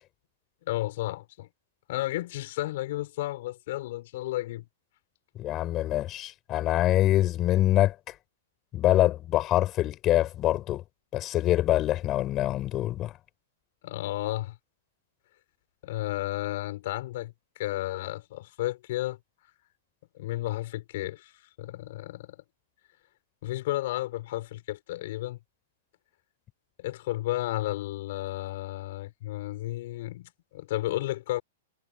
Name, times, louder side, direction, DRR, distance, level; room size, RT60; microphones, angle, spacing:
voice 1, 0.7-1.5 1.9-4.7 13.8-14.6 15.8-19.2 20.1-21.3 21.6-22.4 23.4-25.4 26.8-31.4, left 16 dB, 60° left, 6.3 m, -32 dB
voice 2, 5.4-8.1 8.7-10.8 11.1-13.1, left 14 dB, 30° left, 5.7 m, -25 dB
hypercardioid pair, 120°, 0 cm